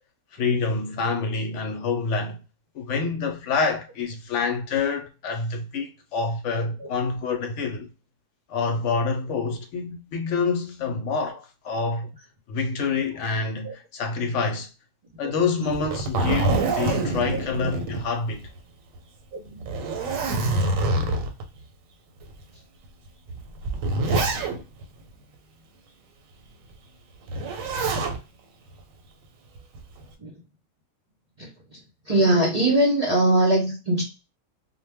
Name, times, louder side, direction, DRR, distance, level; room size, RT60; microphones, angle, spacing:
voice 1, 0.3-2.4 2.7-7.9 8.5-12.1 12.5-14.7 15.2-18.5, left 4 dB, 70° left, 0.9 m, -27 dB
Zipper (clothing), 15.7-18.6 19.0-19.1 19.6-21.4 22.2-22.3 23.3-24.8 27.3-28.2 29.6-30.0, right 2 dB, 85° right, 1.0 m, -25 dB
voice 2, 32.1-34.0, right 1 dB, 45° right, 0.5 m, -21 dB
2.2 x 2.1 x 3.3 m
omnidirectional pair, 1.4 m